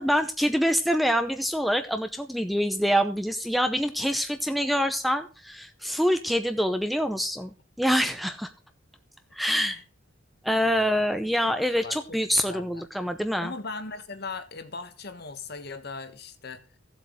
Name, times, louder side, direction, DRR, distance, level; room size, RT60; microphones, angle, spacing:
voice 1, 0.0-7.5 7.8-8.5 9.3-9.8 10.4-13.5, equal, ahead, 0.6 m, -25 dB
voice 2, 9.4-9.8 10.6-11.1 11.5-11.6 11.8-13.1 13.4-16.7, left 4 dB, 50° left, 1.3 m, -39 dB
16.0 x 7.8 x 3.1 m
head